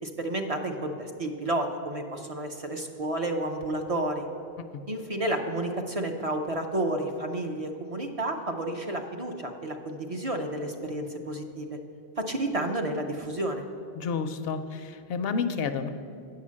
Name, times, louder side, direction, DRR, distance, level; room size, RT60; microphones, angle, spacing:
voice 1, 0.0-4.3 4.9-11.8 12.2-13.6, right 1 dB, 40° right, 4 dB, 0.6 m, -31 dB
voice 2, 13.9-15.9, left 5 dB, 70° left, 9 dB, 0.8 m, -30 dB
9.0 x 5.7 x 7.4 m, 2.4 s
omnidirectional pair, 1.1 m